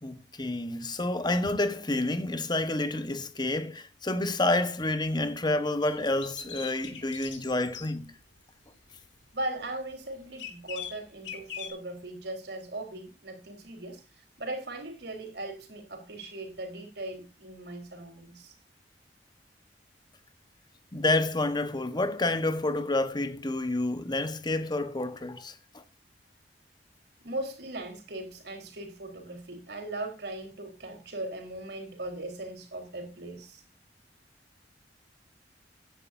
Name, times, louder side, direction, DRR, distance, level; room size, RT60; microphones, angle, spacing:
voice 1, 0.0-8.1 20.9-25.8, left 2 dB, 25° left, 1.2 m, -29 dB
sound 1, 5.8-7.9 10.4-11.7, left 8 dB, 90° left, 3.4 m, -40 dB
voice 2, 9.3-14.0 14.4-18.5 27.2-33.6, right 2 dB, 65° right, 4.0 m, -38 dB
16.5 x 10.5 x 2.7 m
head